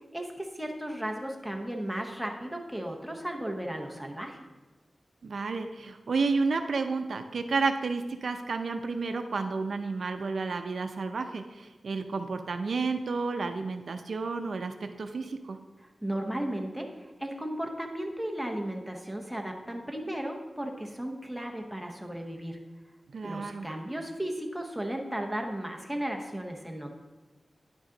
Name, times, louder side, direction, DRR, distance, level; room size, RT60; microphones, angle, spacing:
voice 1, 0.1-4.4 16.0-22.6 23.2-26.9, right 1 dB, 5° right, 2 dB, 0.9 m, -35 dB
voice 2, 5.2-15.6 23.1-23.7, right 4 dB, 70° right, 6 dB, 0.5 m, -31 dB
9.7 x 6.1 x 3.8 m, 1.2 s
wide cardioid pair, 135°, 0 cm